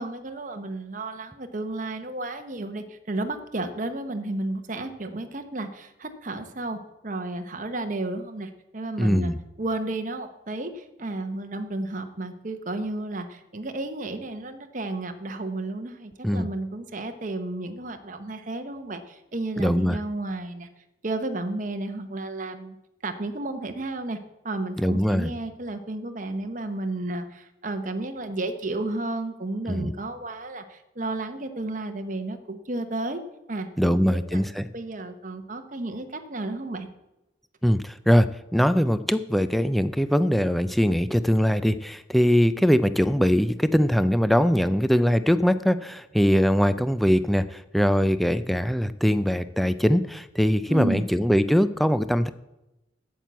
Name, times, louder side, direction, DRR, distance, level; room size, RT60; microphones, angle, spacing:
voice 1, 0.0-9.3 9.6-20.7 21.0-22.8 23.0-24.2 24.4-33.2 33.5-34.4 34.7-36.9 50.7-51.1, right 2 dB, 40° right, 7 dB, 1.0 m, -32 dB
voice 2, 9.0-9.4 16.2-16.5 19.6-20.0 24.8-25.3 29.7-29.9 33.8-34.7 37.6-52.3, equal, ahead, 12 dB, 0.4 m, -22 dB
9.0 x 7.6 x 8.2 m, 0.96 s
head